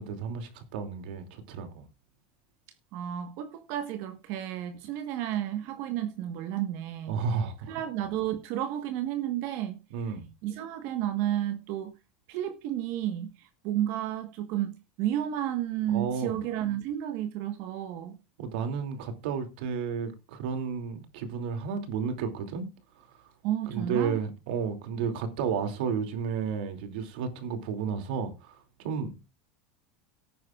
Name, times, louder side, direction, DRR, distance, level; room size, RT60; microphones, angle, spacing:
voice 1, 0.0-1.8 7.1-7.8 9.9-10.3 15.9-16.4 18.4-22.7 23.0-23.1 23.7-29.2, right 6 dB, 75° right, 2.7 m, -32 dB
voice 2, 2.9-7.2 7.7-10.1 10.4-11.9 12.3-18.2 23.4-24.2, right 12 dB, 60° right, 1.4 m, -32 dB
18.0 x 9.4 x 2.4 m
supercardioid pair, 130°, 5 cm